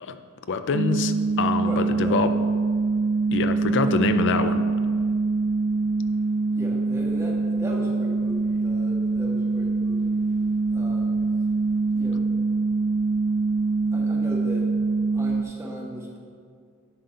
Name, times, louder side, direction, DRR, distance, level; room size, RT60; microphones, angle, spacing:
voice 1, 0.5-2.3 3.3-4.7, left 4 dB, 55° left, 10 dB, 0.5 m, -25 dB
sound 1, 0.7-15.4, right 3 dB, 60° right, 0.4 m, -24 dB
voice 2, 1.5-2.2 3.8-4.1 6.5-10.2 10.7-11.2 11.7-12.6 13.9-14.7 15.1-16.2, equal, 10° right, -4 dB, 1.5 m, -38 dB
9.7 x 4.0 x 6.5 m, 2.2 s
head